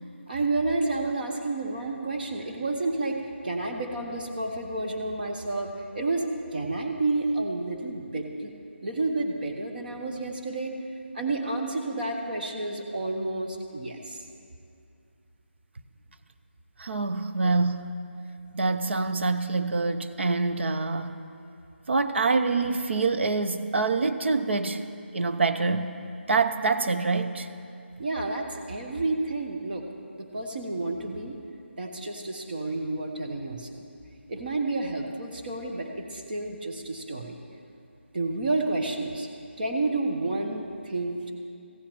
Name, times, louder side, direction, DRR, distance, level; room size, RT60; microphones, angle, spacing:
voice 1, 0.3-6.3 6.5-8.5 8.8-10.8 11.1-14.2 28.0-29.9 30.2-31.4 31.8-33.8 34.3-37.4 38.1-39.3 39.6-41.3, right 2 dB, 45° right, 2 dB, 1.2 m, -30 dB
voice 2, 16.8-17.9 18.5-21.1 21.9-24.8 25.1-25.9 26.3-27.5, right 3 dB, 65° right, 8 dB, 0.7 m, -25 dB
15.0 x 5.8 x 8.7 m, 2.5 s
figure-of-eight pair, 160°, 7 cm